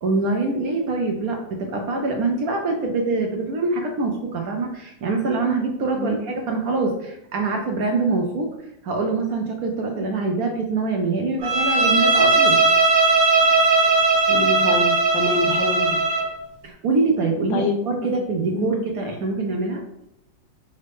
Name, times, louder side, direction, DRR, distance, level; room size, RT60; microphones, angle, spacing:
voice 1, 0.0-8.5 8.8-12.6 16.6-19.8, right 3 dB, 65° right, 2 dB, 1.0 m, -24 dB
Bowed string instrument, 11.4-16.3, right 3 dB, 90° right, 1.7 m, -18 dB
voice 2, 14.3-16.0 17.5-17.8 18.5-18.7, left 3 dB, 80° left, 4 dB, 1.4 m, -26 dB
5.4 x 2.6 x 3.4 m, 0.81 s
omnidirectional pair, 2.0 m